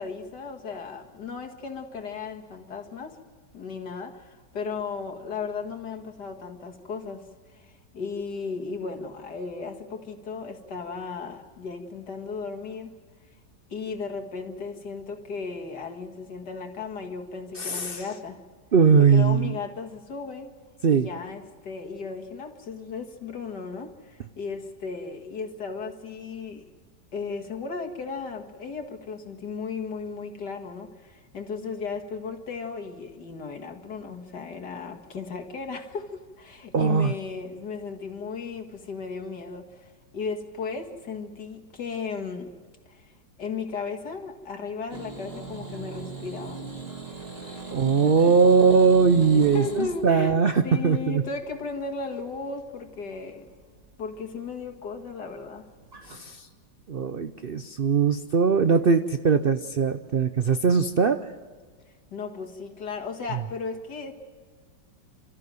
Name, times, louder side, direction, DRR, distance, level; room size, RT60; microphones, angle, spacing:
voice 1, 0.0-3.2 3.5-13.0 13.2-13.4 13.7-18.4 19.1-20.5 20.9-26.7 27.1-42.5 42.9-46.7 47.4-48.4 49.3-50.4 50.6-53.5 54.0-55.7 62.1-64.1, left 5 dB, 70° left, 4 dB, 2.4 m, -35 dB
voice 2, 17.6-18.0 18.7-19.6 20.8-21.1 36.7-37.1 47.7-51.2 56.1-56.5 56.9-61.2 63.3-63.4, right 5 dB, 60° right, 9 dB, 0.5 m, -20 dB
sound 1, 44.9-56.2, right 3 dB, 35° right, 2.8 m, -41 dB
29.5 x 13.5 x 7.7 m, 1.5 s
omnidirectional pair, 1.9 m